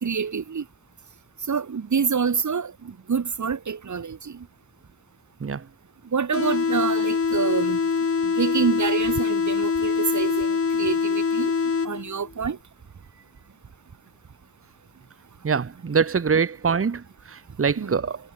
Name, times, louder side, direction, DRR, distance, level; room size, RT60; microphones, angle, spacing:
voice 1, 0.0-0.6 1.5-4.4 6.1-7.8 8.2-11.5 11.8-12.6 17.8-17.9, right 6 dB, 80° right, 2.1 m, -27 dB
sound 1, 6.3-12.3, left 5 dB, 50° left, 1.2 m, -24 dB
voice 2, 15.4-18.2, right 5 dB, 50° right, 1.1 m, -24 dB
wide cardioid pair, 110°, 29 cm